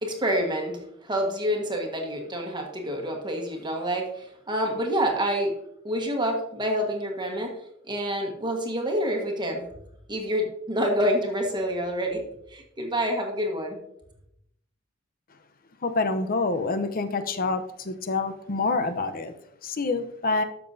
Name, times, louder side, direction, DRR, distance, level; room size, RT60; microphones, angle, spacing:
voice 1, 0.0-5.5 5.8-7.6 7.9-9.6 10.1-12.2 12.5-13.8, equal, 25° right, 1 dB, 1.4 m, -27 dB
voice 2, 15.8-19.3 19.6-20.4, left 3 dB, 45° left, 9 dB, 0.7 m, -27 dB
12.5 x 6.9 x 2.7 m, 0.77 s
head